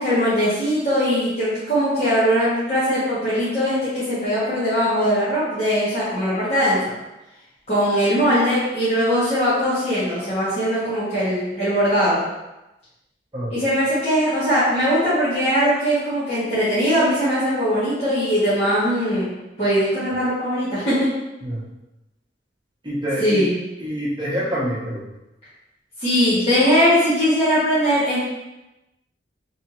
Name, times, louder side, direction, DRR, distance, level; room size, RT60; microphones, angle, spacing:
voice 1, 0.0-6.8 7.7-12.2 13.5-19.3 19.6-21.1 23.2-23.5 26.0-28.2, equal, 35° left, -13 dB, 1.4 m, -20 dB
voice 2, 22.8-23.4 23.8-25.1, equal, 25° right, -6 dB, 1.0 m, -26 dB
3.5 x 3.4 x 3.1 m, 0.97 s
head